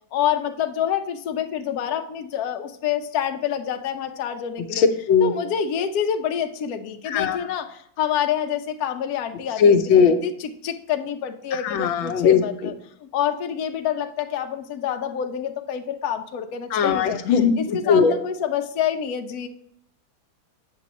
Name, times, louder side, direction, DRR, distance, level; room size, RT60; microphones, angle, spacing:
voice 1, 0.1-4.8 5.2-9.8 10.2-12.7 13.0-19.5, left 9 dB, 65° left, 5 dB, 1.0 m, -27 dB
voice 2, 4.7-5.3 7.1-7.5 9.6-10.2 11.5-12.4 16.7-17.5 17.8-18.1, left 6 dB, 85° left, 6 dB, 1.5 m, -18 dB
8.1 x 6.7 x 3.0 m, 0.68 s
omnidirectional pair, 2.1 m